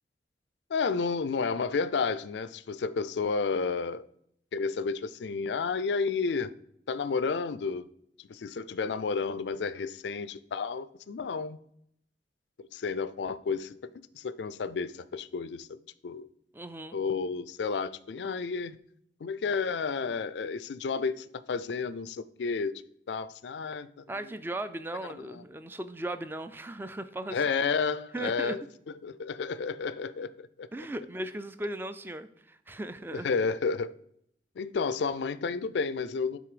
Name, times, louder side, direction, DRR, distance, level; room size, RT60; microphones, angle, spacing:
voice 1, 0.7-4.0 4.5-6.5 6.9-7.8 8.3-11.6 12.6-13.7 14.1-16.3 16.9-18.8 19.2-22.8 23.1-24.0 25.1-25.4 27.3-28.6 29.0-30.7 33.1-33.9 34.6-36.4, left 5 dB, 85° left, 0.4 m, -31 dB
voice 2, 16.5-17.0 24.1-27.4 28.1-28.6 30.7-33.3, right 1 dB, 10° right, 0.4 m, -37 dB
9.2 x 3.9 x 4.9 m
head